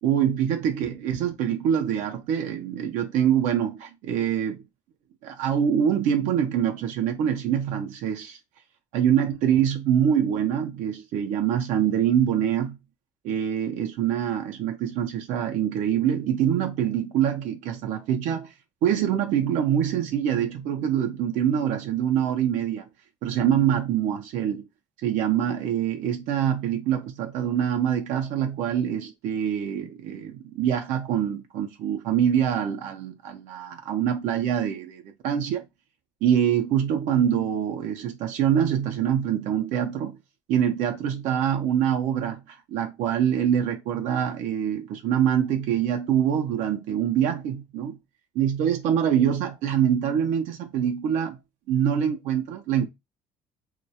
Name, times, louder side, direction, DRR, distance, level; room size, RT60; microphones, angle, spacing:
voice 1, 0.0-4.6 5.2-8.4 8.9-12.8 13.2-18.5 18.8-22.9 23.2-24.6 25.0-35.6 36.2-40.2 40.5-48.0 48.4-51.4 51.7-52.9, right 9 dB, 75° right, 0.4 m, -25 dB
2.2 x 2.1 x 2.7 m
cardioid pair, 100°, 13 cm